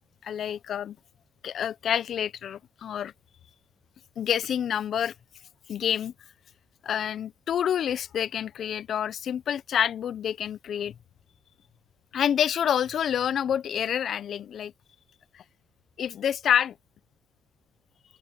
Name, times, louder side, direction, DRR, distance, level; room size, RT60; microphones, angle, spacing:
voice 1, 0.2-1.0 1.4-3.1 4.2-5.1 5.7-6.1 6.8-10.9 12.1-14.7 15.3-15.4 16.0-16.7, left 9 dB, 55° left, 0.5 m, -28 dB
cardioid pair, 120°, 0 cm